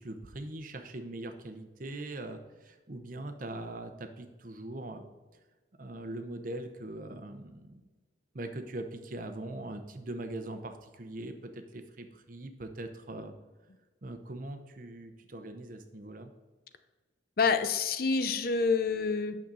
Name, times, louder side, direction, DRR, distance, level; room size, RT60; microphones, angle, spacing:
voice 1, 0.0-5.0 5.8-7.8 8.3-13.3 14.0-16.3, right 1 dB, 45° right, 7 dB, 0.8 m, -41 dB
voice 2, 17.4-19.4, left 5 dB, 50° left, 10 dB, 0.5 m, -27 dB
8.8 x 6.6 x 4.0 m, 1.2 s
head